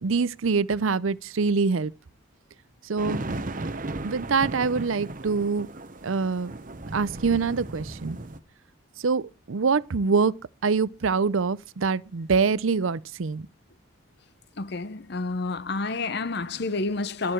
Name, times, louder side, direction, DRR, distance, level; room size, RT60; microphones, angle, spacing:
voice 1, 0.0-1.9 2.8-3.2 4.0-5.7 6.0-6.5 6.9-8.2 9.0-10.4 10.6-13.5, right 4 dB, 75° right, 0.6 m, -25 dB
sound 1, 3.0-8.4, right 2 dB, 40° right, 1.0 m, -35 dB
voice 2, 14.6-17.3, left 3 dB, 50° left, 0.7 m, -29 dB
12.0 x 11.0 x 4.5 m
head